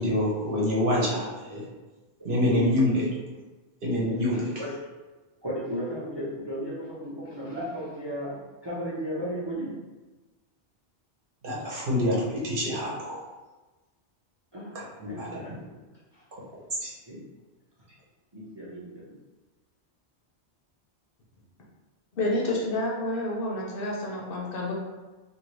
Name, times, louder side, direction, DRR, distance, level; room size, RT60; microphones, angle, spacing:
voice 1, 0.0-1.6 2.2-3.1 3.8-4.5 11.4-13.3 15.0-15.4 16.8-16.9, left 1 dB, 55° right, -5 dB, 0.9 m, -26 dB
voice 2, 4.3-4.7 5.4-9.7 14.5-14.8 15.1-15.7 16.1-16.2 17.1-17.2 18.3-19.2, equal, 30° right, -8 dB, 0.6 m, -35 dB
voice 3, 22.2-24.7, left 1 dB, 60° left, -3 dB, 0.8 m, -29 dB
2.7 x 2.6 x 3.1 m, 1.2 s
omnidirectional pair, 1.1 m